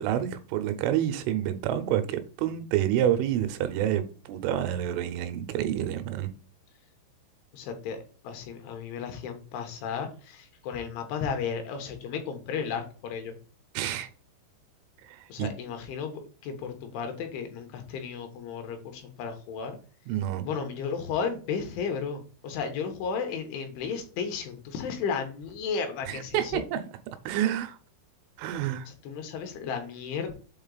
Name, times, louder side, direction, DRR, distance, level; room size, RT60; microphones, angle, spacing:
voice 1, 0.0-6.3 13.7-14.1 15.0-15.5 20.1-20.5 26.1-26.8 27.3-27.8 28.4-28.9, right 11 dB, 80° right, 3.1 m, -28 dB
voice 2, 7.5-13.4 15.3-19.8 20.4-26.6 28.9-30.3, left 6 dB, 75° left, 3.5 m, -34 dB
8.0 x 3.8 x 3.9 m
omnidirectional pair, 5.8 m